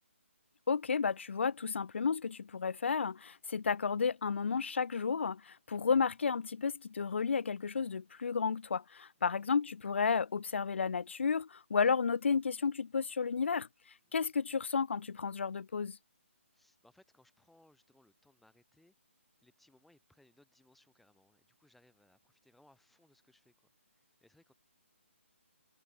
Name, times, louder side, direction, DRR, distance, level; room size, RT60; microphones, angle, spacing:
voice 1, 0.7-13.7 14.1-16.0, left 5 dB, 60° left, 0.8 m, -32 dB
voice 2, 9.2-9.6 14.1-14.2 16.5-18.9 19.4-24.5, left 1 dB, ahead, 3.1 m, -67 dB
figure-of-eight pair, 145°, 7 cm